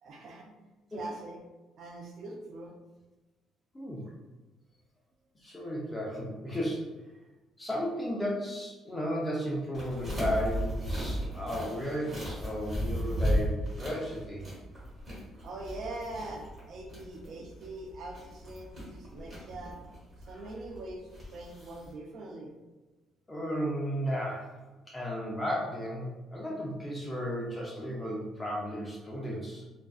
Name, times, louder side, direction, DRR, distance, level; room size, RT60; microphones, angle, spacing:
voice 1, 0.0-1.4 1.8-2.7 15.4-19.8 20.2-22.5, right 2 dB, 55° right, 1 dB, 0.4 m, -43 dB
voice 2, 3.7-4.1 5.4-6.9 7.6-14.5 20.3-20.4 23.3-24.5 24.9-29.7, equal, 10° left, -4 dB, 0.5 m, -34 dB
sound 1, 9.7-21.9, equal, 25° right, 1.1 m, -36 dB
2.5 x 2.2 x 2.3 m, 1.1 s
cardioid pair, 150°, 0 cm